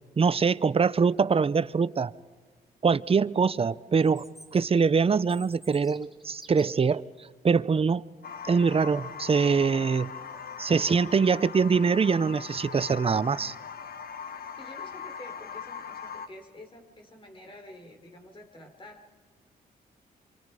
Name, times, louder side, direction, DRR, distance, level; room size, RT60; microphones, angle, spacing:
voice 1, 0.2-2.1 2.8-4.2 4.5-7.0 7.4-8.0 8.4-10.1 10.6-13.5, right 5 dB, 35° right, 0.7 m, -23 dB
Chirp tweet, 4.0-7.0, right 1 dB, ahead, 2.1 m, -52 dB
sound 1, 8.2-16.3, left 6 dB, 60° left, 1.2 m, -40 dB
voice 2, 14.6-19.1, left 1 dB, 30° left, 4.6 m, -48 dB
27.0 x 25.5 x 5.0 m
cardioid pair, 65°, 17 cm